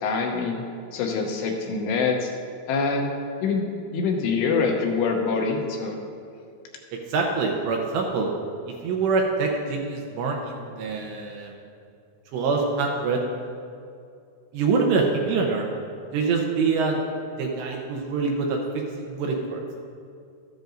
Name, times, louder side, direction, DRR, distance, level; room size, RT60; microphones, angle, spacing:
voice 1, 0.0-0.6 0.9-2.3 2.7-3.1 3.4-3.7 3.9-6.0, left 4 dB, 80° left, 2 dB, 2.7 m, -25 dB
voice 2, 6.9-8.3 8.7-11.5 12.3-13.2 14.5-15.7 16.1-17.0 17.4-19.6, right 4 dB, 80° right, 0 dB, 2.8 m, -25 dB
13.5 x 10.5 x 2.6 m, 2.4 s
omnidirectional pair, 5.5 m